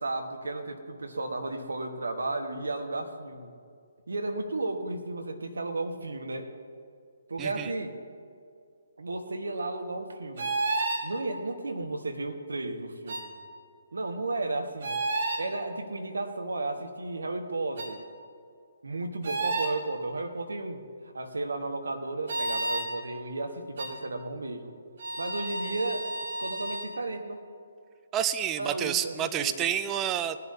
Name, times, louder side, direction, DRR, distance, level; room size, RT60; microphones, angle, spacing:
voice 1, 0.0-3.6 4.1-6.5 7.3-8.0 9.0-10.5 11.0-13.3 13.9-15.0 15.4-18.0 18.8-20.8 21.1-24.7 25.2-26.1 26.4-27.4 28.6-29.7, right 2 dB, 70° right, 5 dB, 1.3 m, -34 dB
voice 2, 7.4-7.7 28.1-30.4, right 10 dB, 15° right, 10 dB, 0.5 m, -29 dB
sound 1, 10.4-11.1 13.1-13.3 14.8-15.4 17.8-17.9 19.2-19.8 22.3-22.9 23.8-23.9 25.0-26.9, right 2 dB, 50° right, 1.7 m, -31 dB
19.0 x 11.0 x 2.8 m, 2.2 s
figure-of-eight pair, 135°, 0 cm